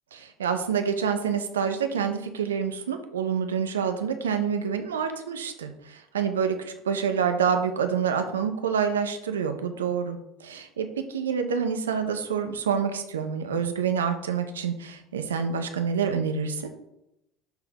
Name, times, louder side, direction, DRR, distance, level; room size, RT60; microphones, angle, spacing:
voice 1, 0.1-16.7, right 7 dB, 90° right, 7 dB, 0.7 m, -27 dB
11.5 x 3.9 x 2.9 m, 0.86 s
hypercardioid pair, 75°, 0 cm